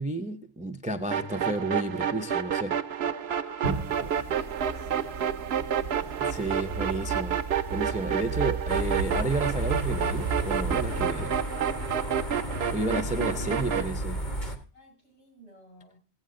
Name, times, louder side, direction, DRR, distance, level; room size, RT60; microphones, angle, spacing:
voice 1, 0.0-2.8 6.2-7.4 7.7-11.4 12.7-14.2, right 2 dB, 10° right, 6 dB, 0.5 m, -31 dB
sound 1, 1.1-13.9, right 8 dB, 65° right, 0.9 m, -30 dB
voice 2, 3.3-6.4 14.7-16.0, left 1 dB, 65° left, -1 dB, 6.3 m, -52 dB
sound 2, 3.6-11.1, right 4 dB, 90° right, 1.2 m, -34 dB
sound 3, 8.7-14.6, left 1 dB, 40° left, 1.6 m, -34 dB
18.0 x 8.5 x 3.7 m, 0.38 s
omnidirectional pair, 1.2 m